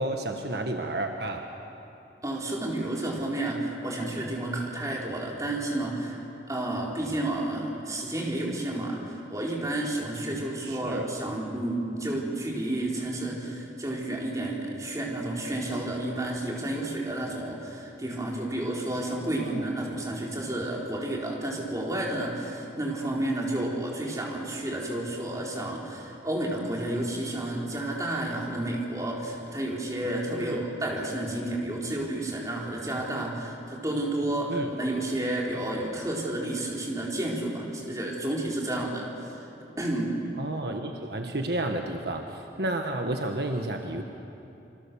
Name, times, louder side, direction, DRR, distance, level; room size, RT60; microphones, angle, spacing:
voice 1, 0.0-1.5 10.6-11.1 19.4-19.7 30.4-30.7 34.5-34.7 40.4-44.0, right 1 dB, 65° right, 4 dB, 1.4 m, -31 dB
voice 2, 2.2-39.5 39.8-40.1, right 1 dB, 20° right, -2 dB, 4.5 m, -31 dB
27.5 x 25.0 x 7.1 m, 2.8 s
head